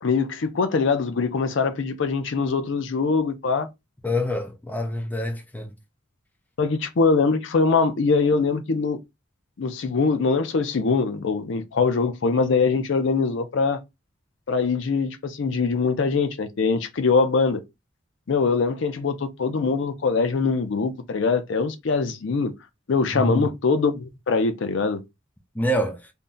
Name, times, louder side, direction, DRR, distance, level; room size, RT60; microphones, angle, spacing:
voice 1, 0.0-3.7 6.6-9.0 9.6-13.8 14.5-17.6 18.3-22.5 22.9-25.0, left 4 dB, 65° left, 0.5 m, -23 dB
voice 2, 4.0-5.7 23.1-23.5 25.5-26.0, equal, 10° left, 0.4 m, -26 dB
2.6 x 2.1 x 3.6 m
head